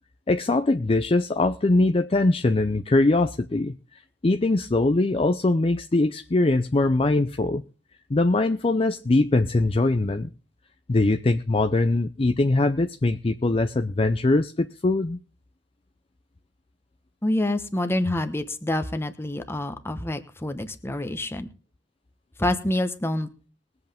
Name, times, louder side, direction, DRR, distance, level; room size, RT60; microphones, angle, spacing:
voice 1, 0.3-7.6 8.1-10.3 10.9-15.2, left 2 dB, 30° left, 8 dB, 0.5 m, -22 dB
voice 2, 17.2-21.5 22.4-23.3, left 1 dB, 15° left, 9 dB, 1.0 m, -27 dB
21.5 x 7.9 x 3.5 m, 0.36 s
head